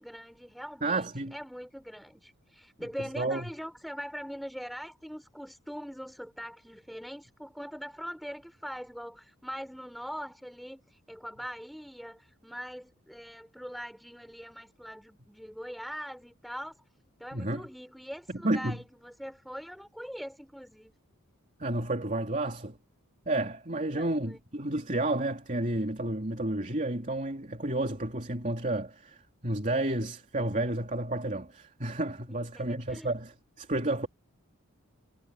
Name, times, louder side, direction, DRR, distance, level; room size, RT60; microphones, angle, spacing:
voice 1, 0.0-16.8 17.2-20.9 23.9-24.4 32.5-33.1, equal, ahead, 6.5 m, -42 dB
voice 2, 0.8-1.3 3.2-3.5 17.3-17.6 18.4-18.8 21.6-22.8 23.3-34.1, right 2 dB, 35° right, 3.2 m, -31 dB
head